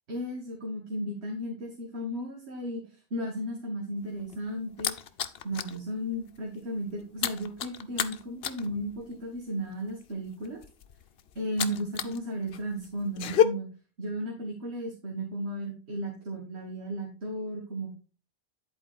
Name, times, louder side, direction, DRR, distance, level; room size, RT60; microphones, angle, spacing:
voice 1, 0.1-4.9 5.4-10.6 11.3-13.7 14.0-18.0, equal, 75° right, 1 dB, 1.7 m, -35 dB
sound 1, 4.0-5.8 6.1-6.4 6.6-12.2 12.5-13.4, left 9 dB, 65° left, 0.9 m, -30 dB
10.5 x 4.4 x 4.0 m, 0.36 s
omnidirectional pair, 1.1 m